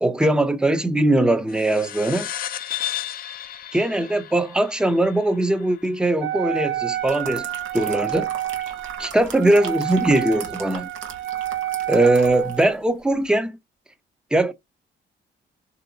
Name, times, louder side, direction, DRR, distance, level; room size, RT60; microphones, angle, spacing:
voice 1, 0.0-2.3 3.7-7.5 7.7-8.3 9.0-10.9 11.9-13.6 14.3-14.5, right 1 dB, 5° right, 0.5 m, -20 dB
sound 1, 1.5-6.4, left 12 dB, 50° left, 0.4 m, -34 dB
Wind instrument woodwind instrument, 6.2-12.7, right 13 dB, 65° right, 0.5 m, -29 dB
sound 2, 6.7-12.8 13.1-13.3, right 6 dB, 90° right, 1.0 m, -39 dB
3.6 x 2.7 x 2.6 m
cardioid pair, 90°, 20 cm